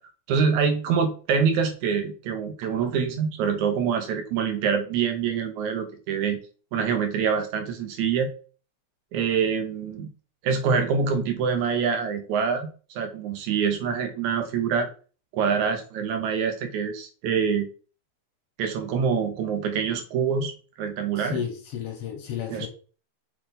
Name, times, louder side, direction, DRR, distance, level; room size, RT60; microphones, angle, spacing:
voice 1, 0.3-6.4 6.7-8.3 9.1-10.1 10.4-12.7 13.0-14.9 15.3-17.7 18.6-20.5 20.8-21.4 22.5-22.7, right 6 dB, 80° right, 5 dB, 2.4 m, -25 dB
voice 2, 21.2-22.7, left 9 dB, 65° left, 3 dB, 1.9 m, -32 dB
6.5 x 3.9 x 3.9 m, 0.37 s
omnidirectional pair, 3.3 m